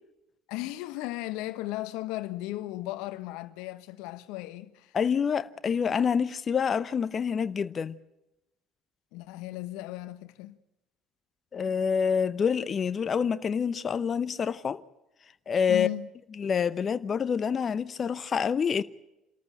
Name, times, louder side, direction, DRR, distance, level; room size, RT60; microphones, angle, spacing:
voice 1, 0.5-4.9 9.1-10.6 15.7-16.1, left 17 dB, 70° left, 1.2 m, -36 dB
voice 2, 4.9-8.0 11.5-14.8 15.5-15.9 16.4-18.8, left 6 dB, 40° left, 0.8 m, -27 dB
27.0 x 14.0 x 8.9 m
hypercardioid pair, 60°, 0 cm